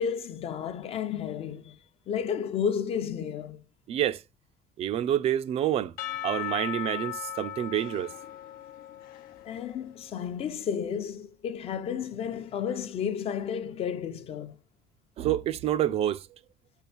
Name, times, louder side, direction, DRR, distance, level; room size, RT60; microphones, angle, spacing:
voice 1, 0.0-1.8 2.1-3.6 9.4-14.6, left 7 dB, 40° left, 0.7 m, -32 dB
voice 2, 3.9-4.2 4.8-5.9 6.2-8.1 15.2-16.2, right 11 dB, 40° right, 0.4 m, -27 dB
Percussion / Church bell, 6.0-10.1, left 12 dB, 70° left, 0.8 m, -38 dB
7.3 x 4.5 x 7.0 m
cardioid pair, 180°, 15 cm